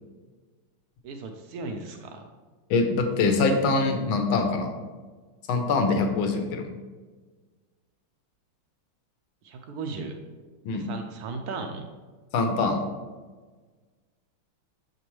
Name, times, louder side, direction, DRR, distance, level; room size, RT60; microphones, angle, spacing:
voice 1, 1.0-2.2 9.4-10.1 10.7-11.9, right 4 dB, 85° right, 4 dB, 0.8 m, -36 dB
voice 2, 2.7-4.7 5.5-6.7 10.6-10.9 12.3-12.8, left 3 dB, 85° left, 5 dB, 1.6 m, -24 dB
7.2 x 5.2 x 3.1 m, 1.4 s
omnidirectional pair, 2.2 m